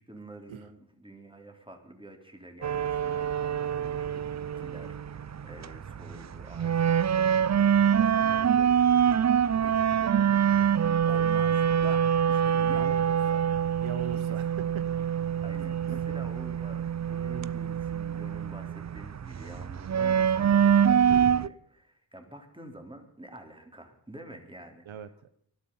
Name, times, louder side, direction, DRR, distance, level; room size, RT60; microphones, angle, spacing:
voice 1, 0.0-4.2 4.6-13.7 14.1-14.4 15.4-24.8, right 1 dB, 10° right, 4 dB, 3.7 m, -48 dB
sound 1, 2.6-21.5, right 8 dB, 35° right, 0.6 m, -25 dB
voice 2, 12.6-12.9 13.8-14.9 15.9-16.0 24.9-25.3, right 9 dB, 80° right, 12 dB, 1.0 m, -40 dB
19.5 x 12.5 x 5.6 m, 0.67 s
cardioid pair, 60°, 47 cm